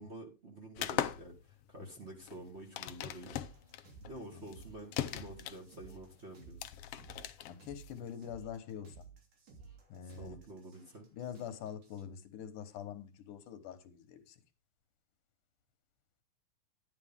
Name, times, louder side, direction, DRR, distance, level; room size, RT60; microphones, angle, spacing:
voice 1, 0.0-3.4 4.0-6.6 10.2-11.1, right 2 dB, 25° right, 1.5 m, -49 dB
sound 1, 0.8-8.1, left 12 dB, 75° left, 1.4 m, -40 dB
sound 2, 3.3-12.0, right 5 dB, 85° right, 4.5 m, -56 dB
voice 2, 7.4-9.0 9.9-10.4 11.1-14.4, left 8 dB, 90° left, 2.7 m, -45 dB
11.5 x 9.8 x 3.6 m
omnidirectional pair, 3.5 m